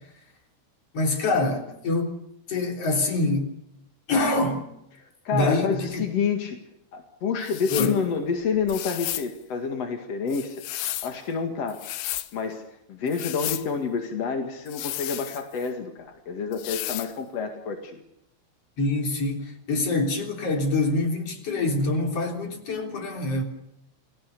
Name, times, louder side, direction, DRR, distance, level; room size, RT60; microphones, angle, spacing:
voice 1, 0.9-2.1 2.5-3.5 4.1-4.7 5.3-6.1 7.7-8.0 18.8-23.4, left 2 dB, 35° left, 3 dB, 3.8 m, -25 dB
voice 2, 5.0-6.6 6.9-10.6 11.0-11.8 12.3-12.6 12.9-18.0, left 5 dB, 50° left, 5 dB, 2.0 m, -28 dB
sound 1, 7.4-8.0 8.7-9.3 10.3-11.2 11.7-12.3 13.1-13.7 14.7-15.7 16.5-17.1, left 15 dB, 75° left, 3.3 m, -33 dB
29.5 x 20.0 x 6.9 m, 0.80 s
omnidirectional pair, 5.8 m